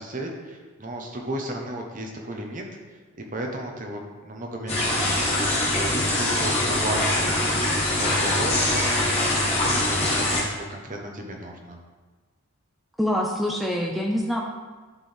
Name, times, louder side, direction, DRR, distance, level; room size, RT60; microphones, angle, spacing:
voice 1, 0.0-2.6 3.3-10.0 10.3-11.8, right 1 dB, 35° right, 1 dB, 1.0 m, -34 dB
sound 1, 4.7-10.4, left 1 dB, 30° left, 1.5 m, -23 dB
voice 2, 13.0-14.4, equal, ahead, 0 dB, 0.5 m, -25 dB
11.0 x 4.5 x 3.5 m, 1.3 s
head